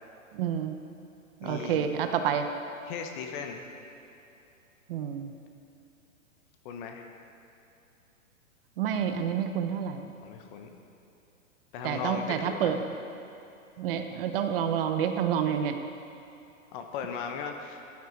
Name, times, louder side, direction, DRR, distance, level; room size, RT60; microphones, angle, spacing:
voice 1, 0.3-0.8 1.4-2.5 4.9-5.3 8.8-10.0 11.8-12.8 13.8-15.8, right 8 dB, 45° right, 7 dB, 0.8 m, -28 dB
voice 2, 1.4-1.9 2.9-3.6 6.6-7.1 10.2-10.8 11.7-12.8 16.7-17.8, left 6 dB, 35° left, 4 dB, 1.2 m, -37 dB
15.0 x 9.4 x 4.7 m, 2.9 s
hypercardioid pair, 140°, 41 cm